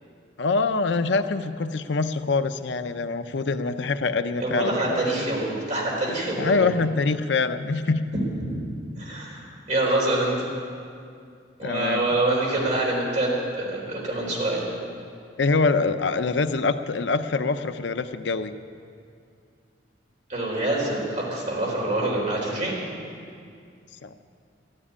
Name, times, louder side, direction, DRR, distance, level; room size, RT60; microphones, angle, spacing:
voice 1, 0.4-5.0 6.4-8.0 11.6-12.1 15.4-18.5 24.0-24.1, left 4 dB, 75° left, 10 dB, 0.6 m, -24 dB
voice 2, 4.4-6.6 8.5-8.6 9.0-10.4 11.6-14.7 20.3-22.8, right 2 dB, 45° right, -3 dB, 4.2 m, -26 dB
13.0 x 9.8 x 9.8 m, 2.3 s
head